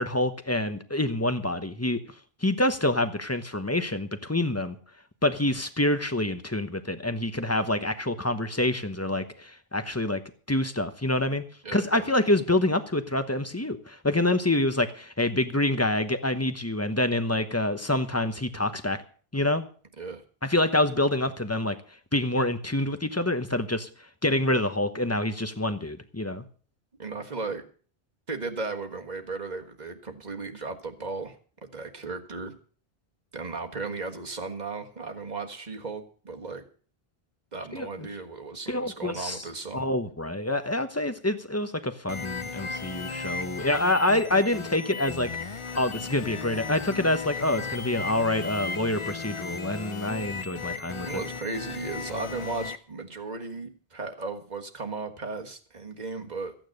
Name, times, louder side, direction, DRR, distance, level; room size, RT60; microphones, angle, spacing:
voice 1, 0.0-2.0 2.4-4.7 5.2-10.2 10.5-11.4 11.7-19.0 19.3-19.6 20.4-21.8 22.1-23.9 24.2-26.4 37.7-37.9 38.7-39.4 39.7-45.3 45.8-51.1, left 1 dB, 15° left, 10 dB, 1.0 m, -26 dB
voice 2, 11.6-12.1 20.0-20.2 27.0-27.6 28.3-31.4 31.6-32.5 33.3-36.6 37.5-39.9 50.8-56.6, right 3 dB, 45° right, 4 dB, 1.6 m, -36 dB
sound 1, 42.1-52.8, left 4 dB, 35° left, 0.7 m, -36 dB
14.5 x 9.2 x 6.5 m, 0.43 s
omnidirectional pair, 1.0 m